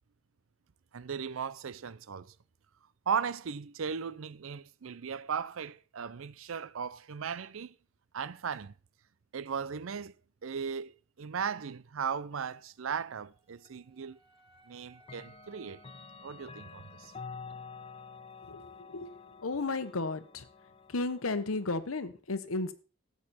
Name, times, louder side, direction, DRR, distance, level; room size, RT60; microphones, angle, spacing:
voice 1, 0.9-2.3 3.1-7.7 8.1-8.7 9.3-10.1 10.4-14.2 14.7-15.8 16.2-17.1, right 6 dB, 75° right, 0.5 m, -37 dB
Wind instrument woodwind instrument, 13.1-17.3, right 1 dB, 20° right, 7.1 m, -64 dB
Clock, 13.6-13.7 15.0-21.8, left 5 dB, 25° left, 0.4 m, -49 dB
voice 2, 18.5-19.1 19.4-20.5 20.9-22.7, left 3 dB, 90° left, 1.0 m, -34 dB
13.5 x 8.4 x 4.2 m
head